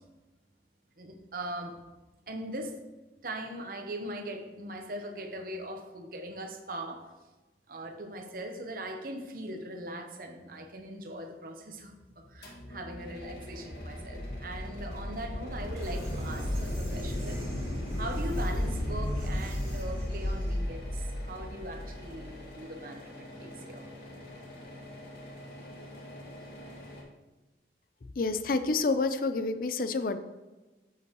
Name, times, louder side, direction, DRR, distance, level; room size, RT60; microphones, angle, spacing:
voice 1, 1.0-1.7 2.3-2.8 3.2-7.1 7.7-12.0 12.3-17.4 18.0-23.9, right 1 dB, 50° right, 4 dB, 0.9 m, -40 dB
sound 1, 12.2-22.4, left 1 dB, 90° left, 1.2 m, -34 dB
sound 2, 12.4-27.0, left 1 dB, 70° left, 2.1 m, -47 dB
sound 3, 15.8-20.6, right 1 dB, 25° right, 2.7 m, -44 dB
voice 2, 28.2-30.2, left 3 dB, 50° left, 11 dB, 0.5 m, -28 dB
7.9 x 7.6 x 3.0 m, 1.1 s
head